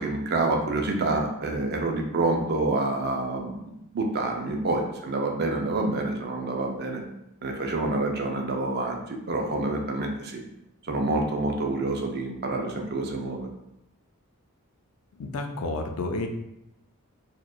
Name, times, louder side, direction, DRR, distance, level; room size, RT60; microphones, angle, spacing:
voice 1, 0.0-7.0 7.4-9.0 9.3-10.4 10.9-13.5, right 2 dB, 45° right, 2 dB, 0.5 m, -27 dB
voice 2, 15.2-16.3, left 2 dB, 80° left, 4 dB, 0.5 m, -30 dB
4.4 x 3.0 x 2.3 m, 0.84 s
head